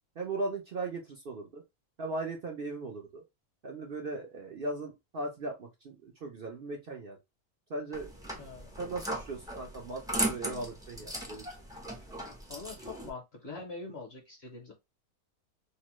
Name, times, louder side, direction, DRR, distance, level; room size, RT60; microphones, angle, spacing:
voice 1, 0.2-1.6 2.0-3.2 3.6-7.2 7.7-8.4 8.8-11.4, right 2 dB, 60° right, 1 dB, 0.6 m, -38 dB
sound 1, 7.9-13.1, right 1 dB, 5° right, 0.3 m, -37 dB
voice 2, 8.4-8.7 12.5-14.7, left 3 dB, 50° left, 1 dB, 1.0 m, -43 dB
3.0 x 2.1 x 3.0 m, 0.22 s
omnidirectional pair, 1.6 m